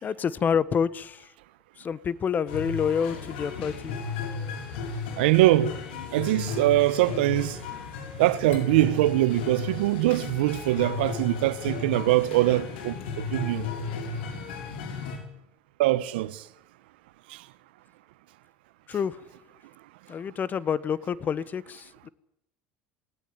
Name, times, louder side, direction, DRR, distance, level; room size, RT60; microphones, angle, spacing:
voice 1, 0.0-1.3 1.8-4.0 18.9-19.2 20.1-22.1, left 7 dB, 30° left, 1.2 m, -28 dB
sound 1, 2.5-15.2, left 4 dB, 85° left, 6.0 m, -35 dB
voice 2, 5.2-5.7 6.1-7.6 8.2-13.7 15.8-16.4 17.3-17.4, right 16 dB, 85° right, 1.2 m, -23 dB
19.5 x 18.5 x 9.6 m
supercardioid pair, 110°, 5 cm